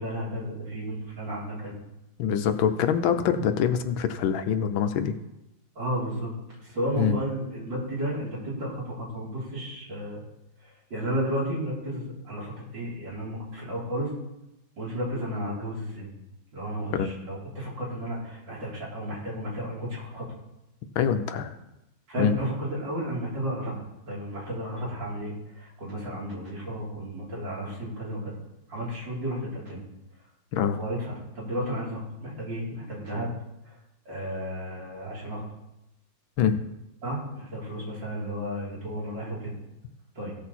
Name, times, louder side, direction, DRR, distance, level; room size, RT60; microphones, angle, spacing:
voice 1, 0.0-1.8 5.8-6.3 6.6-10.2 10.9-14.1 14.8-16.1 16.5-20.3 22.1-23.8 24.1-28.3 28.7-29.8 30.7-33.3 34.1-35.4 37.0-39.5 40.2-40.3, equal, 60° right, -6 dB, 4.3 m, -33 dB
voice 2, 2.2-5.1 7.0-7.2 16.9-17.1 21.0-21.5 22.2-22.4 30.5-30.8 36.4-36.6, left 8 dB, 80° left, 9 dB, 1.5 m, -24 dB
16.5 x 6.7 x 4.2 m, 0.91 s
omnidirectional pair, 2.2 m